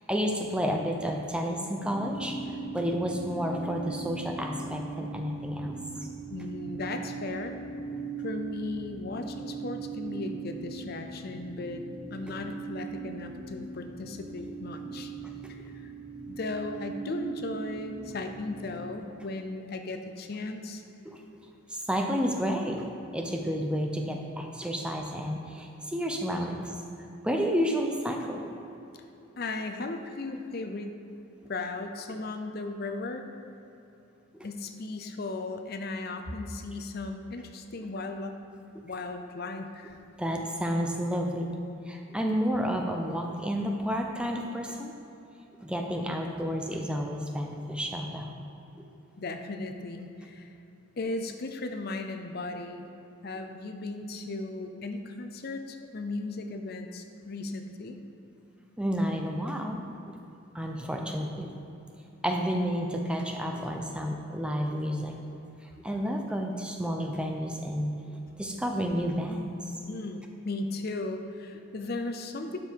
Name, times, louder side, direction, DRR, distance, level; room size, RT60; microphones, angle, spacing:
voice 1, 0.1-5.8 21.1-21.2 21.9-22.8 23.1-26.7 27.2-28.4 40.2-41.5 41.9-44.9 45.6-48.3 58.8-59.8 60.5-61.5 62.2-65.2 65.8-67.9 68.4-69.5, equal, 5° right, 2 dB, 0.6 m, -30 dB
sound 1, 1.8-18.9, right 4 dB, 25° right, 1.3 m, -40 dB
voice 2, 6.3-7.6 8.2-11.8 12.1-15.1 15.5-15.9 16.2-20.8 29.4-31.0 31.5-33.3 34.4-38.4 38.8-40.0 49.2-50.5 51.0-52.9 53.2-58.0 69.9-72.6, left 2 dB, 50° left, 6 dB, 0.5 m, -36 dB
12.0 x 5.3 x 4.6 m, 2.9 s
head